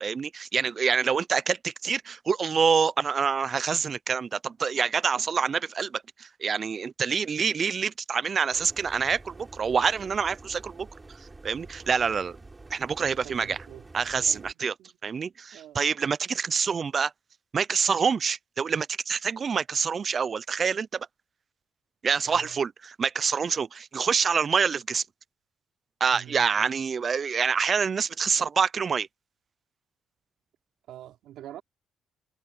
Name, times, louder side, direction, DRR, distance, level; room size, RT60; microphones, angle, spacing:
voice 1, 0.0-10.9 11.4-12.4 12.7-13.6 13.9-14.7 15.0-17.1 17.5-21.1 22.0-25.0 26.0-29.1, right 6 dB, 45° right, 0.5 m, -26 dB
sound 1, 8.5-14.5, right 2 dB, 20° right, 4.1 m, -48 dB
voice 2, 13.1-15.0 15.5-15.9 22.2-22.6 26.1-26.7 30.9-31.6, right 12 dB, 80° right, 3.6 m, -47 dB
cardioid pair, 90°, 0 cm